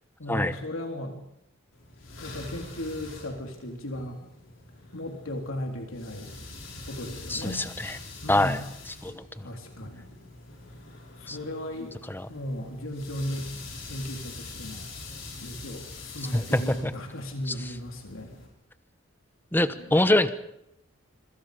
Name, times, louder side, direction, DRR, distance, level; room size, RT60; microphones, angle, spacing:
voice 1, 0.2-1.2 2.2-4.2 4.9-6.3 6.9-7.6 8.2-8.6 9.4-10.1 11.2-12.0 12.3-13.5 13.9-14.9 15.4-18.3 19.8-20.0, left 1 dB, 90° left, 3 dB, 3.6 m, -36 dB
sound 1, 1.7-18.5, left 3 dB, 70° left, 6.7 m, -44 dB
voice 2, 7.3-8.0 8.3-8.6 9.0-9.5 11.3-11.4 12.1-12.3 16.3-16.9 17.5-17.6 19.5-20.3, left 1 dB, 10° left, 12 dB, 1.0 m, -24 dB
26.0 x 25.0 x 5.2 m, 0.78 s
head